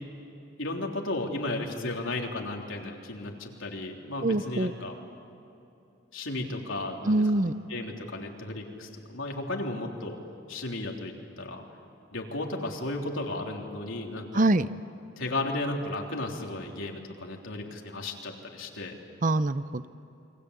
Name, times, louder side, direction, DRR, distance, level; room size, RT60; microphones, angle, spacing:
voice 1, 0.6-4.9 6.1-10.2 10.5-11.6 12.1-14.5 15.2-18.9, left 2 dB, 80° left, 1 dB, 3.6 m, -34 dB
voice 2, 4.2-4.7 7.1-7.5 14.3-14.7 19.2-19.9, right 2 dB, 40° right, 13 dB, 0.7 m, -24 dB
29.5 x 24.0 x 8.3 m, 2.9 s
head